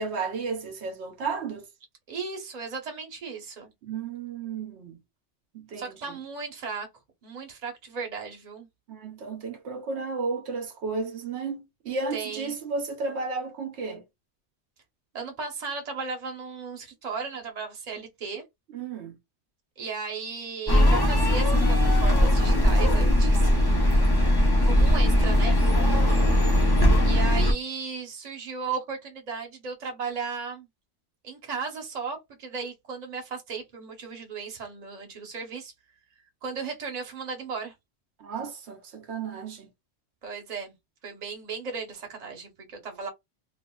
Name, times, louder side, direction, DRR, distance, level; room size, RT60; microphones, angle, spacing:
voice 1, 0.0-1.7 3.8-5.0 5.5-6.2 8.9-14.0 18.7-19.1 23.2-23.3 25.8-26.0 38.2-39.7, right 4 dB, 75° right, 0.9 m, -33 dB
voice 2, 2.1-3.7 5.8-6.9 7.2-8.7 12.1-12.5 15.1-18.4 19.8-23.5 24.6-25.6 27.0-30.7 31.2-35.7 36.4-37.7 40.2-40.7 41.0-43.1, right 5 dB, 40° right, 0.8 m, -35 dB
sound 1, 20.7-27.5, left 1 dB, 25° left, 0.7 m, -20 dB
2.9 x 2.4 x 2.2 m
omnidirectional pair, 1.2 m